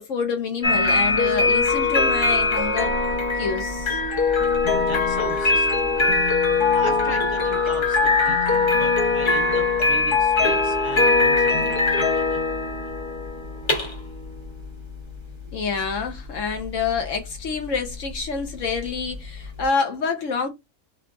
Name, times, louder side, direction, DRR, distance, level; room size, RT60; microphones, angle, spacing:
voice 1, 0.0-3.0 3.4-4.0 15.5-20.5, left 5 dB, 65° left, 1.1 m, -27 dB
sound 1, 0.6-19.6, left 3 dB, 45° left, 0.3 m, -22 dB
voice 2, 4.7-6.2 6.7-12.0, right 1 dB, 35° right, 0.3 m, -37 dB
3.7 x 2.4 x 2.4 m
omnidirectional pair, 1.5 m